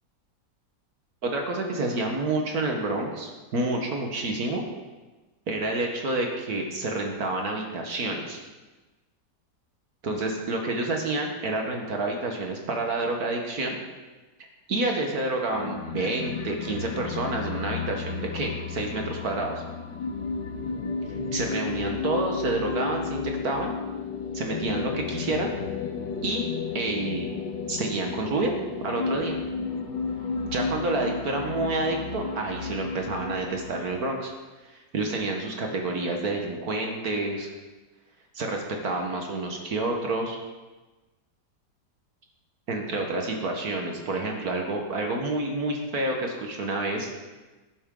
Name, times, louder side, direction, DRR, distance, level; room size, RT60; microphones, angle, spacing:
voice 1, 1.2-4.6 5.5-8.4 10.0-13.8 14.7-19.5 21.3-23.7 24.3-25.5 26.2-26.5 26.7-27.3 27.7-28.5 28.8-29.4 30.5-34.3 34.9-37.5 38.3-40.4 42.7-47.1, right 2 dB, 60° right, 2 dB, 1.8 m, -28 dB
sound 1, 15.5-34.1, left 5 dB, 85° left, 1.6 m, -33 dB
12.0 x 10.5 x 3.8 m, 1.2 s
omnidirectional pair, 1.9 m